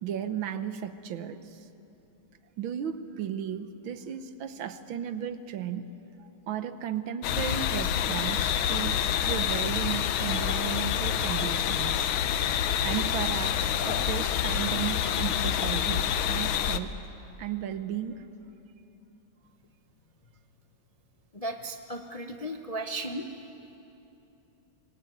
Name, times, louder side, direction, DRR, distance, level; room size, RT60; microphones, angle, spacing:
voice 1, 0.0-1.6 2.6-5.9 6.2-9.0 9.3-12.1 12.8-16.9 17.4-18.3, right 9 dB, 75° right, 11 dB, 1.8 m, -35 dB
sound 1, 7.2-16.8, left 9 dB, 85° left, 1.7 m, -27 dB
voice 2, 21.3-23.3, right 1 dB, 35° left, 4 dB, 0.6 m, -35 dB
25.5 x 21.5 x 9.2 m, 2.9 s
omnidirectional pair, 2.2 m